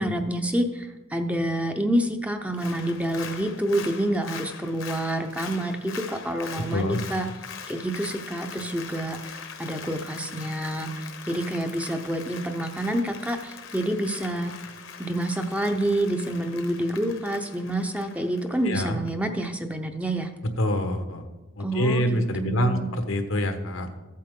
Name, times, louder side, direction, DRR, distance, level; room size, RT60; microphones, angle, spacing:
voice 1, 0.0-7.3 7.7-14.5 15.0-20.3 21.6-22.9, right 1 dB, 5° right, 5 dB, 0.6 m, -28 dB
Applause, 2.5-19.1 19.4-19.5, left 6 dB, 70° left, 1.0 m, -42 dB
voice 2, 6.5-7.0 18.6-19.0 20.6-21.2 21.6-23.9, left 1 dB, 90° left, 6 dB, 1.2 m, -26 dB
14.5 x 8.6 x 3.7 m, 1.1 s
head